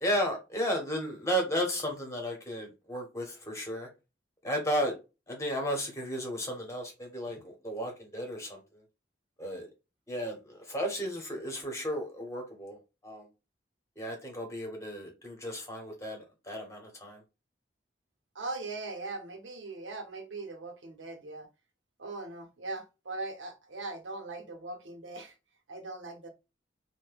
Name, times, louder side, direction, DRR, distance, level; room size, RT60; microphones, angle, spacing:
voice 1, 0.0-3.9 4.4-4.9 5.3-8.6 9.4-9.7 10.1-12.8 13.0-13.2 14.0-17.2, equal, 15° left, 0.9 m, -34 dB
voice 2, 18.3-21.5 22.0-25.3 25.7-26.3, right 2 dB, 90° right, 0.8 m, -40 dB
2.7 x 2.1 x 3.3 m
head